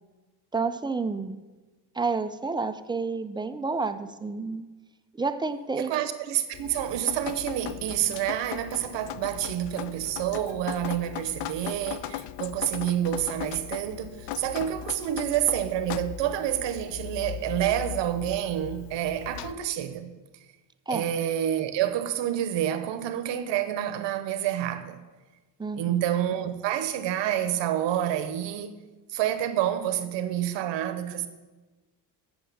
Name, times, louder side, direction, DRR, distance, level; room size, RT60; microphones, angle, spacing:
voice 1, 0.5-1.4 2.0-4.7 5.2-5.9 20.9-21.1 25.6-26.0, right 4 dB, 10° right, 0.4 m, -30 dB
voice 2, 5.8-20.1 20.9-25.0 25.7-28.8 29.1-31.3, right 11 dB, 85° right, 0.9 m, -28 dB
Drip, 6.5-19.5, left 12 dB, 75° left, 0.5 m, -38 dB
8.0 x 6.3 x 6.8 m
cardioid pair, 105°, 42 cm